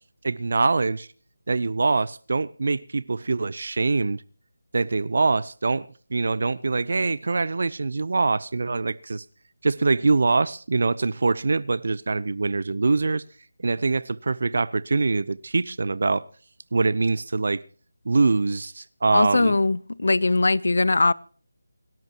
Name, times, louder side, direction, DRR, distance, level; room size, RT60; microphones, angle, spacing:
voice 1, 0.2-1.1 1.5-4.2 4.7-9.2 9.6-13.2 13.6-16.2 16.7-17.6 18.0-19.6, right 3 dB, 55° right, 20 dB, 0.7 m, -24 dB
voice 2, 19.1-21.1, left 2 dB, 65° left, 22 dB, 0.7 m, -20 dB
27.5 x 12.5 x 3.0 m, 0.43 s
figure-of-eight pair, 165°, 0 cm